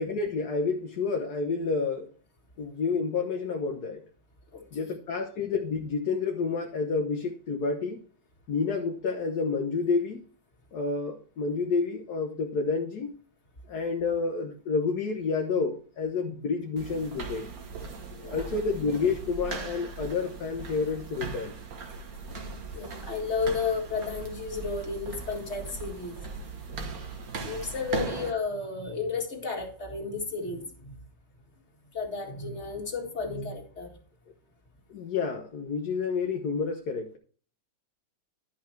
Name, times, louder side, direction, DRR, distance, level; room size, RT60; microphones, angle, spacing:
voice 1, 0.0-2.1 2.6-4.0 4.7-8.0 8.5-10.2 10.7-13.1 13.7-17.5 18.3-21.5 34.9-37.2, left 4 dB, 60° left, 3 dB, 1.6 m, -29 dB
voice 2, 4.5-5.0 18.1-18.5 22.7-26.2 27.4-31.0 31.9-33.9, left 4 dB, 35° left, 1 dB, 2.4 m, -33 dB
sound 1, 16.8-28.3, right 4 dB, 50° right, 1.7 m, -39 dB
11.0 x 6.0 x 4.5 m, 0.42 s
omnidirectional pair, 2.1 m